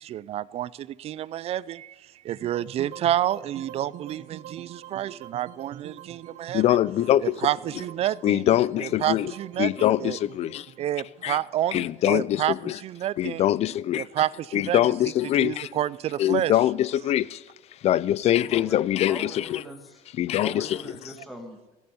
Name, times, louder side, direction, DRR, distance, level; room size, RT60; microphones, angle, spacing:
voice 1, 0.0-1.9 2.2-6.6 7.2-8.4 8.8-9.7 10.0-10.2 10.8-12.5 12.8-13.4 13.9-14.8 15.4-16.5, right 12 dB, 40° right, 0.4 m, -29 dB
sound 1, 2.3-12.5, right 10 dB, 60° right, 1.0 m, -45 dB
voice 2, 6.5-7.4 8.2-9.3 9.6-10.7 11.2-11.4 11.7-12.8 13.2-14.1 14.5-15.7 16.2-17.4 17.8-19.6 20.2-20.8, left 12 dB, 40° left, 0.4 m, -23 dB
voice 3, 19.1-20.0 20.4-21.8, equal, ahead, 1.6 m, -41 dB
16.0 x 7.0 x 9.5 m
cardioid pair, 145°, 16 cm